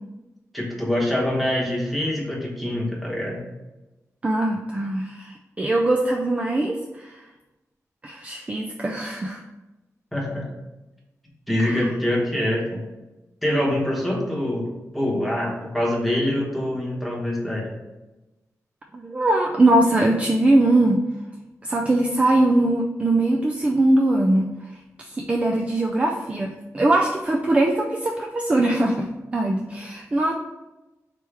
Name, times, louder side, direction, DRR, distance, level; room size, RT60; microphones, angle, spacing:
voice 1, 0.5-3.4 10.1-10.5 11.5-12.9 13.4-14.7 14.9-17.7, left 1 dB, ahead, -3 dB, 1.0 m, -24 dB
voice 2, 4.2-7.2 8.0-9.4 11.6-11.9 18.9-21.0 21.6-24.5 25.0-30.3, right 2 dB, 20° right, 1 dB, 0.3 m, -21 dB
3.3 x 3.0 x 4.6 m, 1.1 s
wide cardioid pair, 120°, 6 cm